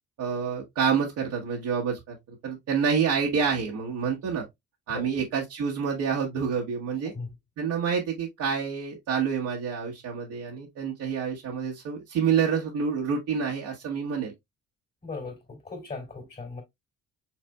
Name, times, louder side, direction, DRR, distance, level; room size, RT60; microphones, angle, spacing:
voice 1, 0.2-4.4 4.9-7.1 7.6-14.3, right 6 dB, 75° right, 1.2 m, -28 dB
voice 2, 15.0-16.6, left 3 dB, 30° left, 2.3 m, -38 dB
5.9 x 3.3 x 2.2 m
cardioid pair, 90°, 30 cm